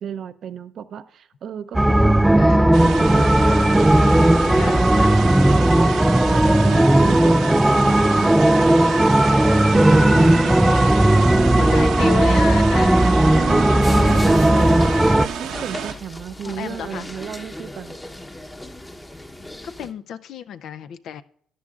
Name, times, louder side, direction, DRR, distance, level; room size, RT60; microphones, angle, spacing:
voice 1, 0.0-5.9 6.3-7.4 7.8-9.3 9.7-10.4 11.1-12.0 13.3-14.5 15.2-18.0, right 8 dB, 60° right, 0.6 m, -34 dB
sound 1, 1.7-15.3, right 1 dB, 10° right, 0.3 m, -16 dB
voice 2, 2.4-2.7 4.6-5.2 6.3-6.9 10.3-10.6 11.5-13.0 13.8-14.7 16.4-17.1 19.6-21.2, left 8 dB, 70° left, 0.5 m, -33 dB
sound 2, 2.7-15.9, right 8 dB, 80° right, 1.1 m, -31 dB
sound 3, 13.8-19.9, left 1 dB, 15° left, 0.9 m, -37 dB
13.0 x 10.5 x 2.4 m
supercardioid pair, 75°, 0 cm